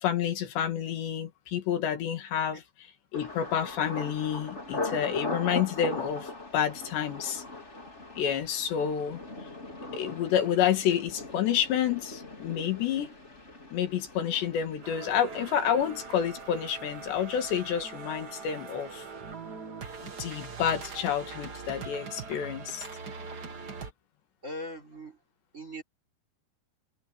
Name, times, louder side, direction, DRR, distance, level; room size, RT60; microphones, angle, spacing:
voice 1, 0.0-2.6 3.1-7.4 8.2-9.2 9.9-13.1 13.7-19.0 20.2-22.9, left 9 dB, 80° left, 4.3 m, -29 dB
Thunder, 3.1-18.9 19.2-19.8 20.2-20.5, left 2 dB, 15° left, 3.9 m, -41 dB
sound 1, 14.8-23.9, right 5 dB, 70° right, 0.9 m, -42 dB
voice 2, 24.4-25.2 25.5-25.8, equal, 20° right, 3.6 m, -40 dB
omnidirectional pair, 5.0 m